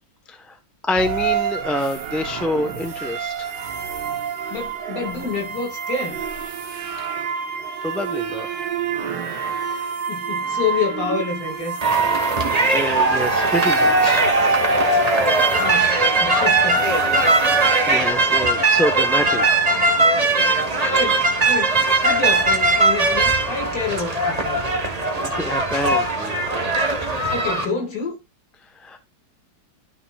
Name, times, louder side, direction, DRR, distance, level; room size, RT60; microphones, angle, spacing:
voice 1, 0.8-3.5 7.2-7.3 7.8-8.5 12.3-12.4 12.7-14.3 14.7-14.8 17.5-19.4 25.2-26.3 28.7-29.0, left 1 dB, ahead, 0.7 m, -27 dB
sound 1, 1.0-18.1, right 5 dB, 65° right, 1.8 m, -28 dB
voice 2, 4.5-6.2 10.1-11.8 15.6-16.9 20.2-20.6 20.9-21.8 22.0-24.7 27.3-28.1, left 4 dB, 45° left, 2.7 m, -28 dB
sound 2, 11.8-27.6, right 2 dB, 25° right, 1.3 m, -19 dB
13.0 x 6.0 x 2.4 m
omnidirectional pair, 2.1 m